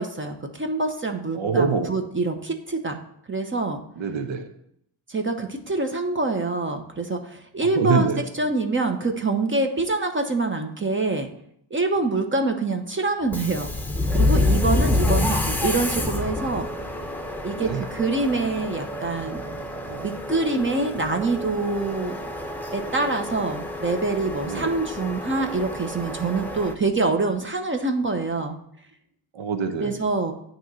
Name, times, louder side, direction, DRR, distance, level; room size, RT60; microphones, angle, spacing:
voice 1, 0.0-3.0 3.3-3.8 5.1-8.1 8.4-11.3 11.7-13.7 14.1-16.7 17.4-19.4 19.9-22.2 22.7-28.6 29.8-30.3, right 3 dB, 25° right, 5 dB, 0.9 m, -25 dB
voice 2, 1.3-1.9 4.0-4.5 7.7-8.2 15.0-15.3 17.6-17.8 24.5-24.7 29.3-29.9, right 5 dB, 75° right, 7 dB, 1.0 m, -25 dB
Subway metro underground, 13.2-26.7, left 2 dB, 5° left, 0.9 m, -27 dB
9.1 x 3.1 x 6.1 m, 0.72 s
cardioid pair, 80°, 47 cm